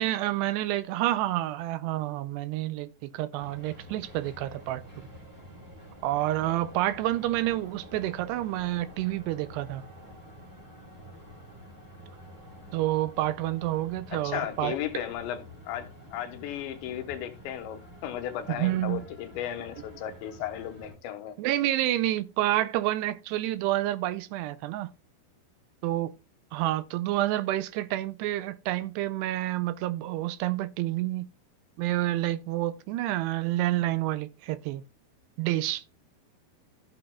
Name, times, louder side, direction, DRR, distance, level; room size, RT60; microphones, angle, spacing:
voice 1, 0.0-4.8 6.0-9.8 12.7-15.0 18.5-19.0 21.4-24.9 25.8-26.2 26.5-31.3 31.8-34.8 35.4-35.8, right 15 dB, 80° right, 2.5 m, -29 dB
sound 1, 3.4-20.9, equal, 5° right, 3.2 m, -48 dB
voice 2, 14.1-21.4, left 10 dB, 90° left, 3.4 m, -35 dB
14.5 x 6.8 x 2.3 m
omnidirectional pair, 5.1 m